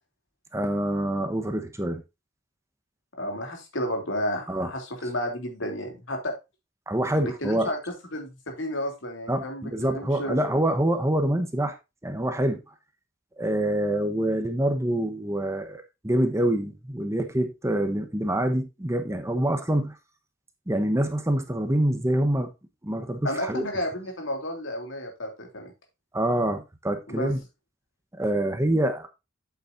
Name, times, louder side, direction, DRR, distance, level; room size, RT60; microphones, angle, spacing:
voice 1, 0.5-2.0 4.5-4.7 6.9-7.7 9.3-11.7 12.0-12.6 13.4-19.9 20.7-22.5 22.8-23.7 26.1-27.4 28.2-29.1, right 1 dB, 15° right, 1.0 m, -26 dB
voice 2, 3.2-6.3 7.2-7.8 8.1-10.4 23.2-25.7 27.1-27.3, equal, 75° left, 3.1 m, -32 dB
8.2 x 8.1 x 2.6 m
head